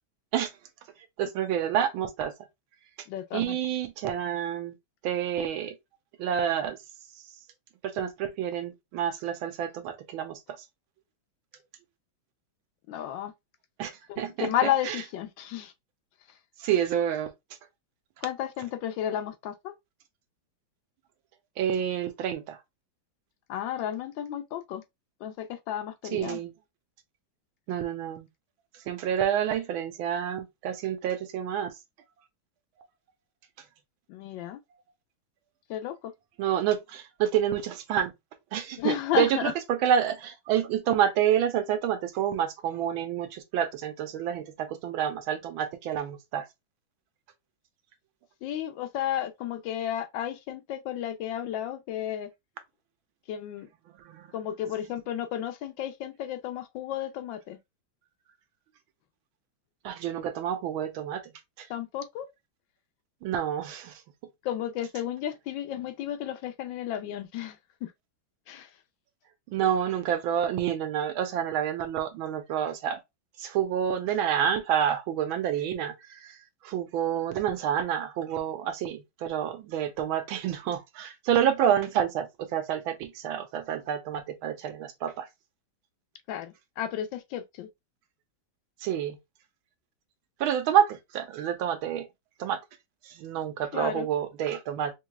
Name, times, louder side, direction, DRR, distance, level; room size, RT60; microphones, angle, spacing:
voice 1, 1.2-2.3 3.3-4.7 5.0-5.8 6.2-6.8 7.9-10.4 13.8-13.9 14.2-15.0 16.6-17.3 21.6-22.6 26.1-26.5 27.7-28.3 28.9-31.7 36.4-38.1 38.5-46.5 54.0-54.3 59.8-61.2 61.6-61.7 63.2-64.0 69.5-73.0 73.4-76.4 76.6-85.3 88.8-89.2 90.4-92.1 92.4-92.6 93.0-94.9, right 9 dB, 85° right, 1.6 m, -28 dB
voice 2, 3.1-3.6 12.9-13.3 14.1-15.7 18.2-19.7 23.5-24.8 25.2-26.4 34.1-34.6 35.7-36.0 38.8-39.5 48.4-52.3 53.3-53.7 54.3-57.6 61.7-62.3 64.4-67.9 68.5-68.7 86.3-87.7 93.7-94.1, left 11 dB, 75° left, 1.3 m, -32 dB
5.2 x 3.0 x 2.3 m
omnidirectional pair, 2.2 m